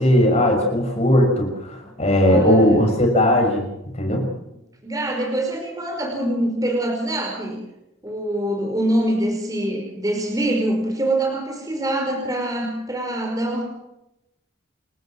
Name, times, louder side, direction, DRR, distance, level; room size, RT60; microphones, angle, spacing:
voice 1, 0.0-3.6 3.9-4.3, left 1 dB, 35° left, 2 dB, 6.3 m, -18 dB
voice 2, 2.2-2.8 4.8-7.6 8.0-13.6, right 1 dB, 20° right, 1 dB, 5.0 m, -24 dB
29.5 x 13.5 x 7.7 m, 0.88 s
head